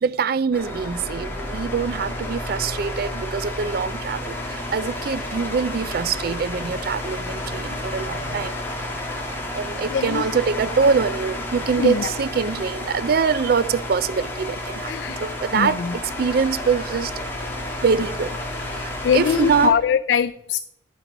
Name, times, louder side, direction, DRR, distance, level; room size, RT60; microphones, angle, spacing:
voice 1, 0.0-8.6 9.6-17.4 17.8-19.8, right 5 dB, 55° right, 0.4 m, -24 dB
sound 1, 0.5-19.7, left 1 dB, 10° left, 1.7 m, -31 dB
voice 2, 9.9-10.2 11.8-12.1 14.9-15.9 19.0-20.6, left 7 dB, 75° left, 0.3 m, -22 dB
10.5 x 6.0 x 5.2 m
head